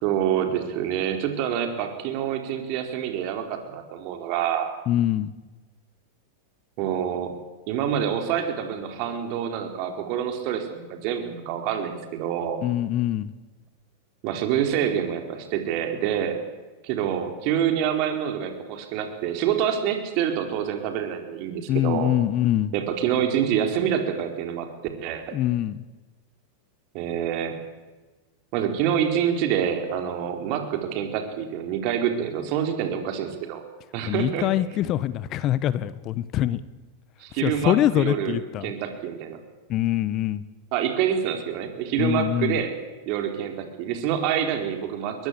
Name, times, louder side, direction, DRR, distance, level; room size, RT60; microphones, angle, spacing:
voice 1, 0.0-4.7 6.8-7.3 7.7-12.6 14.2-16.4 16.8-22.1 22.7-24.7 25.0-25.4 26.9-27.6 28.5-33.6 33.9-34.5 37.2-38.4 38.6-39.4 40.7-42.7 43.1-45.3, right 9 dB, 50° right, 5 dB, 4.6 m, -26 dB
voice 2, 4.9-5.3 12.6-13.3 21.7-22.7 25.3-25.8 34.0-36.6 37.4-38.7 39.7-40.4 42.0-42.6, left 13 dB, 40° left, 17 dB, 1.2 m, -24 dB
22.0 x 22.0 x 8.6 m, 1.2 s
hypercardioid pair, 100°, 0 cm